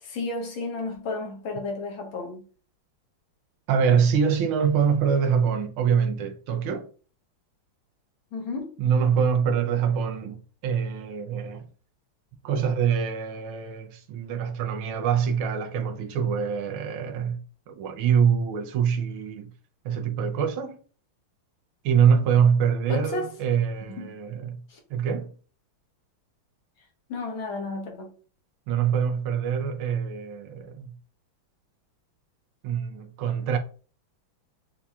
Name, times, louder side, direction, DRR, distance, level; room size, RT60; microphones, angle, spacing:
voice 1, 0.0-2.4 8.3-8.7 22.9-23.3 23.9-24.1 24.7-24.8 27.1-28.1, left 3 dB, 70° left, 1.7 m, -32 dB
voice 2, 3.7-6.9 8.8-11.7 12.4-19.5 19.8-20.8 21.8-24.6 24.9-25.3 28.7-30.9 32.6-33.6, right 7 dB, 80° right, 1.5 m, -24 dB
7.0 x 2.7 x 2.3 m
omnidirectional pair, 2.3 m